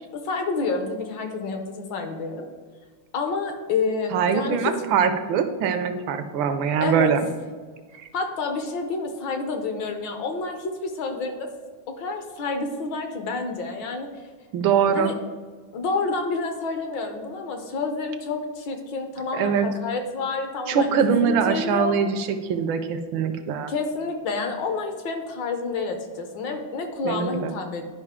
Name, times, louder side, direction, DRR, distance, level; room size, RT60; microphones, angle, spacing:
voice 1, 0.1-2.4 3.1-4.7 6.8-7.1 8.1-11.5 12.0-14.1 14.9-15.1 15.7-22.0 23.7-27.8, left 4 dB, 65° left, 5 dB, 1.4 m, -29 dB
voice 2, 4.1-7.3 8.0-8.1 14.5-15.1 19.3-19.7 20.7-23.7 27.0-27.5, right 7 dB, 75° right, 9 dB, 1.3 m, -23 dB
11.0 x 5.0 x 3.6 m, 1.5 s
omnidirectional pair, 2.4 m